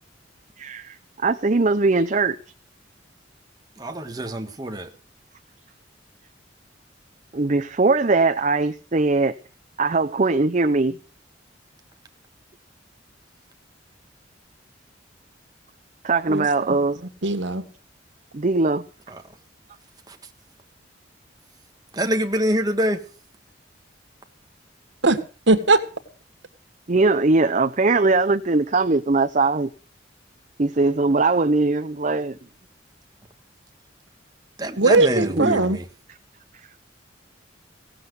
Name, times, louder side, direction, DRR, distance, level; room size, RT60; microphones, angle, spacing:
voice 1, 0.6-0.9 1.2-2.4 7.3-9.3 9.8-11.0 16.0-17.0 18.3-18.8 26.9-29.7 30.6-32.4 35.4-35.5, right 3 dB, 40° right, 0.7 m, -20 dB
voice 2, 3.8-4.9 19.1-19.2 20.1-20.2 21.9-23.0 34.6-35.8, right 1 dB, 20° right, 1.5 m, -25 dB
voice 3, 16.3-17.6 25.0-25.2 25.5-25.8 34.8-35.8, right 2 dB, 75° right, 1.7 m, -20 dB
17.0 x 7.5 x 8.0 m
head